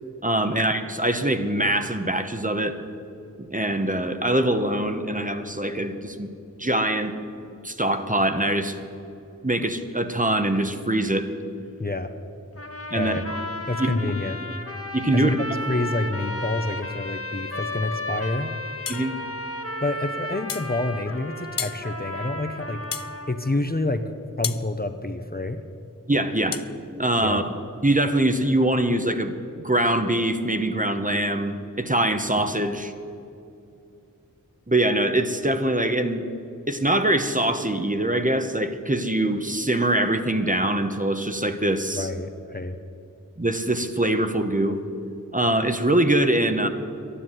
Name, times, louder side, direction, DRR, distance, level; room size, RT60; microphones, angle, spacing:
voice 1, 0.2-2.8 3.4-6.3 6.6-7.1 7.6-8.8 9.4-11.3 12.9-13.4 13.8-14.1 14.9-15.4 18.9-19.1 26.1-26.6 27.0-27.5 27.8-29.3 29.6-32.9 34.7-36.2 36.7-42.1 43.4-44.8 45.3-46.7, right 1 dB, 25° right, 7 dB, 1.0 m, -23 dB
voice 2, 11.8-12.1 12.9-13.2 13.7-14.4 15.1-15.3 15.7-18.5 19.8-22.8 23.3-24.1 24.4-25.6 27.2-27.4 42.0-42.8, left 2 dB, 30° left, 8 dB, 0.8 m, -28 dB
sound 1, 12.6-23.6, left 1 dB, 45° left, 1.3 m, -34 dB
sound 2, 18.9-19.1 20.5-20.7 21.6-21.8 22.9-23.1 24.4-24.7 26.5-26.7, left 7 dB, 80° left, 0.6 m, -31 dB
12.0 x 10.0 x 9.4 m, 2.6 s
wide cardioid pair, 45°, 33 cm